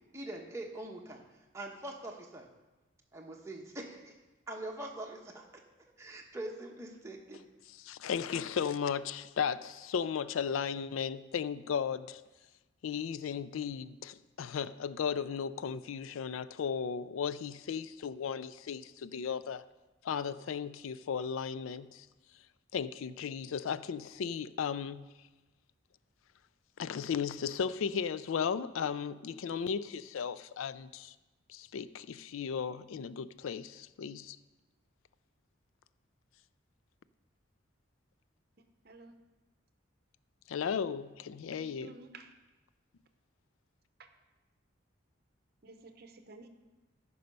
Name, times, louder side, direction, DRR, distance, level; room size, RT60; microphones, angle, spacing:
voice 1, 0.1-1.2 1.5-2.5 3.1-4.1 4.5-5.6 6.0-7.4, right 1 dB, 15° right, 1.1 m, -43 dB
voice 2, 7.8-12.2 12.8-19.6 20.0-22.1 22.7-25.0 26.8-31.1 31.5-34.4 40.5-41.9, left 7 dB, 85° left, 0.4 m, -35 dB
voice 3, 41.5-42.3 45.6-46.5, right 3 dB, 50° right, 0.7 m, -51 dB
13.5 x 5.5 x 5.3 m
head